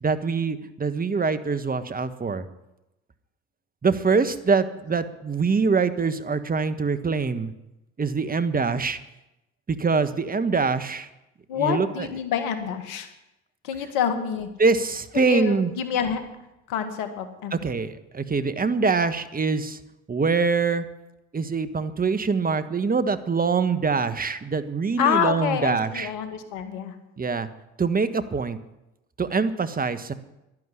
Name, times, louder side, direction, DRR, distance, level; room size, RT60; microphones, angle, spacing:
voice 1, 0.0-2.4 3.8-7.5 8.0-9.0 9.7-11.1 11.5-12.1 14.6-15.7 17.5-19.8 20.1-20.8 21.3-26.1 27.2-27.5 27.8-28.6 29.2-30.1, right 4 dB, 25° right, 12 dB, 1.4 m, -24 dB
voice 2, 11.5-13.1 13.6-14.5 15.1-16.2 16.7-17.6 25.0-26.9, left 8 dB, 80° left, 8 dB, 2.0 m, -27 dB
11.5 x 11.0 x 9.8 m, 0.92 s
hypercardioid pair, 60°, 32 cm